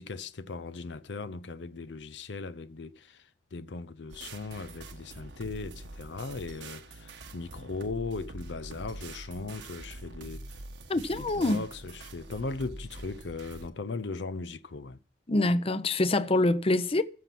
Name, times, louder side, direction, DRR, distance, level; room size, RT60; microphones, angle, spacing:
voice 1, 0.0-10.5 11.1-15.0, left 3 dB, 80° left, 0.7 m, -38 dB
sound 1, 4.1-13.7, right 2 dB, 85° right, 1.2 m, -45 dB
voice 2, 10.9-11.6 15.3-17.0, left 2 dB, 35° left, 0.7 m, -25 dB
14.5 x 5.9 x 5.9 m
head